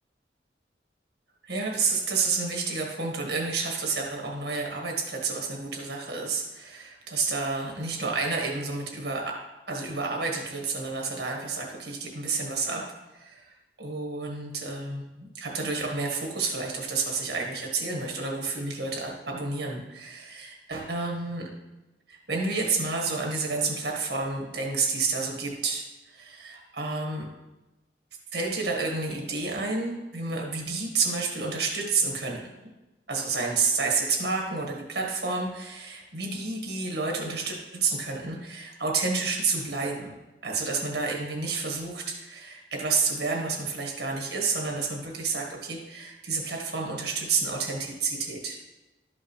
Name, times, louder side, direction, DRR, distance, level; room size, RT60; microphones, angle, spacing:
voice 1, 1.5-9.4 9.7-12.8 13.1-21.5 22.1-27.3 28.3-32.4 33.1-40.2 40.4-48.6, right 4 dB, 70° right, -1 dB, 1.7 m, -30 dB
12.5 x 5.7 x 3.3 m, 1.0 s
head